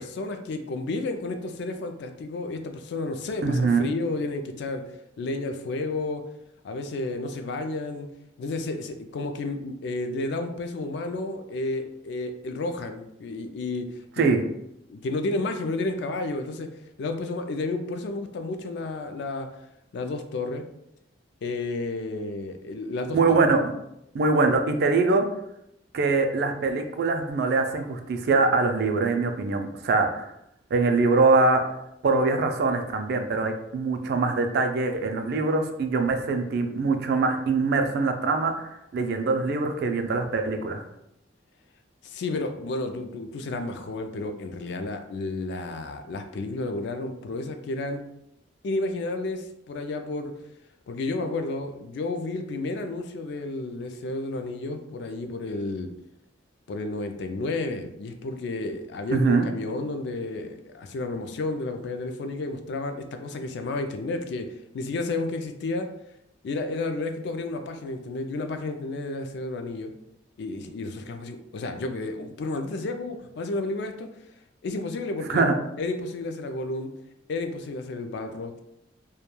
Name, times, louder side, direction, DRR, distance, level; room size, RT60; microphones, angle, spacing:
voice 1, 0.0-4.8 5.2-6.2 6.6-8.1 8.4-14.3 14.9-16.7 17.0-19.5 19.9-20.6 21.4-23.4 42.0-48.0 48.6-50.3 50.9-55.9 56.7-64.5 64.7-65.9 66.4-69.9 70.4-74.1 74.6-75.4 75.8-76.9 77.3-78.7, left 2 dB, 60° left, 6 dB, 0.3 m, -31 dB
voice 2, 3.4-3.9 14.2-14.4 23.1-23.7 24.1-25.2 25.9-30.3 30.7-31.6 32.0-40.8 59.1-59.5 75.3-75.6, right 3 dB, 55° right, 5 dB, 0.3 m, -23 dB
2.2 x 2.2 x 2.9 m, 0.80 s
head